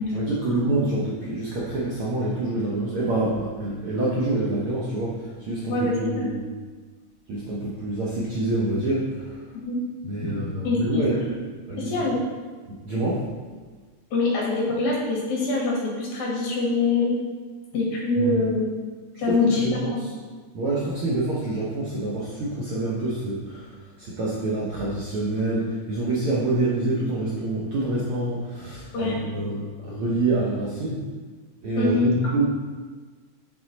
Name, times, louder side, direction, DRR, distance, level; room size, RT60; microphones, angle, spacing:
voice 1, 0.1-6.4 7.3-9.4 10.1-11.3 11.7-12.1 12.7-13.3 18.2-18.4 19.3-20.1 20.5-23.7 24.0-31.0 31.6-32.5, right 2 dB, 70° right, -5 dB, 1.3 m, -27 dB
voice 2, 5.7-6.3 9.6-9.8 10.6-11.0 11.8-12.2 14.1-17.1 17.7-18.7 19.2-20.0 28.9-29.2 31.8-32.1, left 3 dB, 75° left, -3 dB, 2.8 m, -24 dB
7.2 x 4.4 x 4.0 m, 1.4 s
omnidirectional pair, 3.5 m